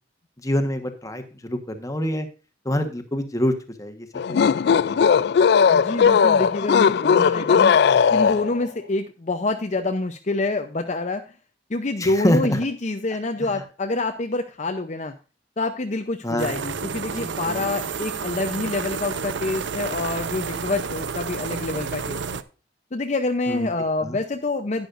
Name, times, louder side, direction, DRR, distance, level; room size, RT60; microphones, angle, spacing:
voice 1, 0.4-2.3 2.6-5.2 12.0-12.6 13.4-13.6 16.2-16.6 17.1-17.7 23.5-23.7 24.0-24.2, left 1 dB, 20° left, 7 dB, 1.3 m, -27 dB
sound 1, 4.2-8.6, left 6 dB, 65° left, 0.3 m, -18 dB
voice 2, 5.6-7.8 8.1-11.2 11.7-15.1 15.6-22.4 22.9-24.9, left 2 dB, 40° left, 5 dB, 0.7 m, -27 dB
sound 2, 16.4-22.4, right 5 dB, 85° right, 0.6 m, -30 dB
11.5 x 9.7 x 2.6 m, 0.34 s
head